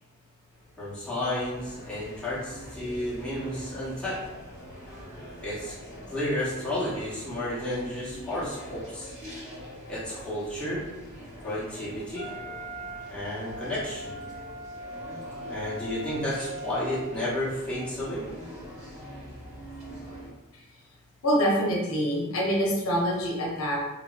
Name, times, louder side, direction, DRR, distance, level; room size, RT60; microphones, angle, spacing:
sound 1, 0.5-20.3, equal, 30° right, 1.2 m, -44 dB
voice 1, 0.8-4.2 5.4-5.7 6.1-9.1 9.9-10.8 11.4-12.3 13.1-14.2 15.5-18.2, left 1 dB, 5° left, -10 dB, 0.8 m, -32 dB
Wind instrument woodwind instrument, 12.2-17.4, equal, 60° right, 0.9 m, -40 dB
voice 2, 21.2-23.8, equal, 70° left, -3 dB, 0.7 m, -25 dB
3.0 x 2.5 x 2.4 m, 1.0 s
head